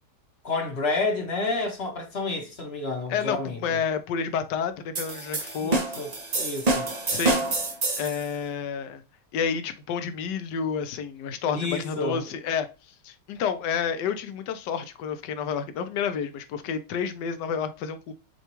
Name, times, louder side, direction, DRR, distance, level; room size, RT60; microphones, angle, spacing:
voice 1, 0.4-3.8 5.6-6.1 6.3-6.9 11.5-12.3, left 3 dB, 45° left, 0.9 m, -30 dB
voice 2, 3.1-5.9 7.1-7.4 8.0-9.0 9.3-12.7 13.0-18.1, left 7 dB, 80° left, 1.3 m, -30 dB
sound 1, 4.9-8.2, right 2 dB, 55° right, 0.4 m, -27 dB
6.7 x 2.3 x 3.0 m
omnidirectional pair, 1.9 m